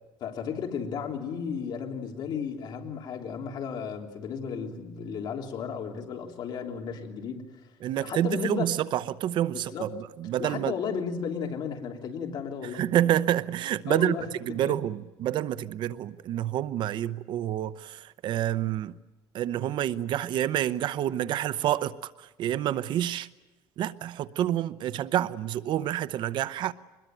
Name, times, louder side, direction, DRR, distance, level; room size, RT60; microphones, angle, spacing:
voice 1, 0.2-7.5 8.0-8.7 9.5-10.0 10.4-12.8 13.8-14.3 14.6-14.7, left 6 dB, 55° left, 3.4 m, -34 dB
voice 2, 7.8-9.9 10.2-10.7 12.7-14.1 14.4-19.0 19.3-23.3 23.8-26.7, right 12 dB, 60° right, 0.8 m, -28 dB
24.0 x 21.0 x 9.1 m
cardioid pair, 145°, 9 cm